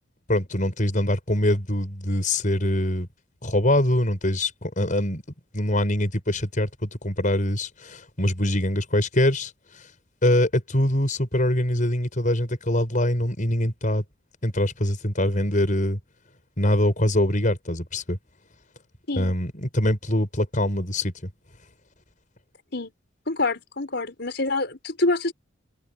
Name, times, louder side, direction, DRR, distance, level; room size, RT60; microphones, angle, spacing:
voice 1, 0.3-3.1 3.4-5.2 5.5-9.5 10.2-14.0 14.4-16.0 16.6-18.2 19.2-21.1, left 1 dB, 40° left, 6.1 m, -23 dB
voice 2, 23.3-25.3, left 2 dB, 60° left, 5.6 m, -26 dB
open air
head